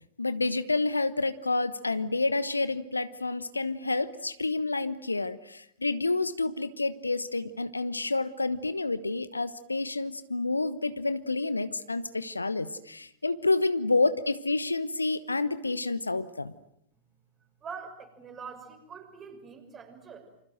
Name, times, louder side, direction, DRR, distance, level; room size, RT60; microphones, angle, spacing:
voice 1, 0.2-16.5, left 3 dB, 80° left, 14 dB, 1.1 m, -29 dB
voice 2, 17.6-20.3, right 6 dB, 25° right, 5 dB, 6.2 m, -44 dB
28.5 x 26.0 x 7.7 m, 0.73 s
figure-of-eight pair, 90°, 0 cm